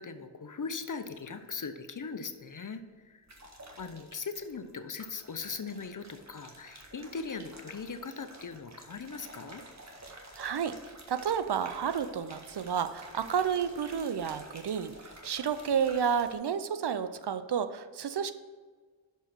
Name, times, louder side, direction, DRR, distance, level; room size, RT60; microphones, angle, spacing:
voice 1, 0.0-3.2 3.8-9.6, left 5 dB, 40° left, 9 dB, 0.8 m, -40 dB
sound 1, 0.9-1.5 3.3-4.7 5.0-16.3, right 1 dB, 35° right, 1.6 m, -51 dB
voice 2, 10.4-10.8 11.1-18.3, right 7 dB, 60° right, 11 dB, 0.6 m, -31 dB
6.4 x 5.4 x 5.9 m, 1.5 s
cardioid pair, 45°, 47 cm